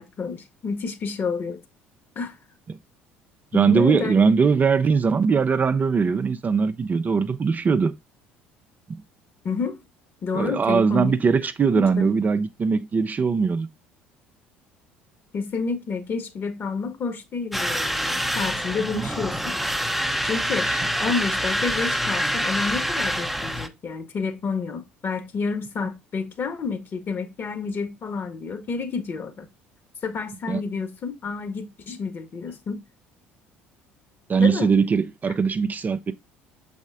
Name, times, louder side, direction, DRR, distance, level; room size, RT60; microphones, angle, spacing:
voice 1, 0.0-1.6 2.1-2.3 3.5-4.2 9.4-9.8 10.2-11.1 11.7-12.1 15.3-19.5 20.2-20.7 21.0-29.5 30.0-32.8 34.4-34.7, left 5 dB, 40° left, 1.5 m, -29 dB
voice 2, 3.5-7.9 10.3-13.7 18.8-19.1 20.6-20.8 30.5-30.6 34.3-36.1, right 5 dB, 30° right, 0.6 m, -21 dB
sound 1, 17.5-23.7, equal, ahead, 0.8 m, -26 dB
7.2 x 4.2 x 3.6 m
figure-of-eight pair, 60°, 6 cm